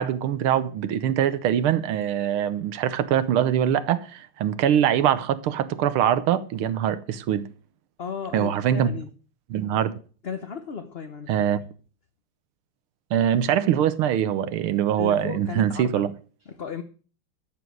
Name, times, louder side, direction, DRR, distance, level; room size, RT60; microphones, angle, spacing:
voice 1, 0.0-7.4 8.3-8.9 9.5-9.9 11.3-11.6 13.1-16.1, right 10 dB, 85° right, 1.8 m, -23 dB
voice 2, 8.0-9.1 10.2-11.5 15.0-16.0 16.5-16.8, left 6 dB, 40° left, 0.8 m, -35 dB
12.5 x 7.2 x 6.2 m
omnidirectional pair, 2.3 m